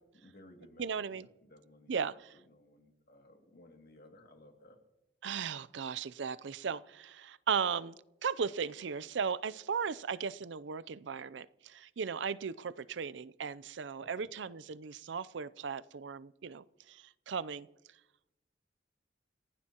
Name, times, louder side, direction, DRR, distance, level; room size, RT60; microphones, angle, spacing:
voice 1, 0.0-4.8 14.0-14.3, left 1 dB, 55° left, 2.4 m, -59 dB
voice 2, 0.8-1.3 1.9-2.3 5.2-8.0 8.2-17.7, right 6 dB, 75° right, 0.5 m, -37 dB
29.0 x 16.0 x 2.9 m
head